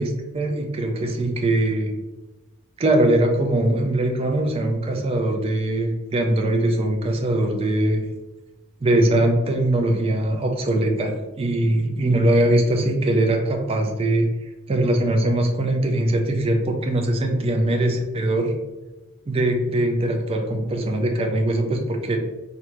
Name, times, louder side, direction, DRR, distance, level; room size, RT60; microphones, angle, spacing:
voice 1, 0.0-1.9 2.8-8.1 8.8-18.5 19.3-22.2, right 1 dB, 25° right, 3 dB, 0.3 m, -21 dB
3.2 x 2.6 x 2.9 m, 1.1 s
head